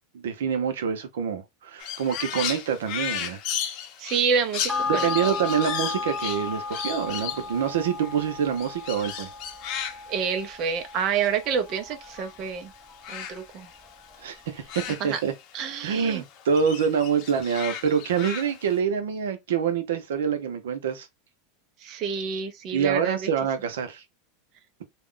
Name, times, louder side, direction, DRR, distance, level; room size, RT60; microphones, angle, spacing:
voice 1, 0.1-3.4 4.9-9.3 14.2-15.3 15.8-21.1 22.7-24.0, right 7 dB, 90° right, 0.7 m, -26 dB
Crow, 1.8-12.5 12.8-15.8 16.1-18.8, left 9 dB, 50° left, 0.7 m, -36 dB
voice 2, 4.0-5.3 10.1-12.7 13.1-13.7 15.0-15.2 15.5-16.2 21.8-23.3, right 6 dB, 45° right, 0.6 m, -28 dB
sound 1, 4.7-13.4 13.8-13.9, left 4 dB, 5° right, 0.5 m, -35 dB
2.3 x 2.0 x 3.7 m
supercardioid pair, 130°, 0 cm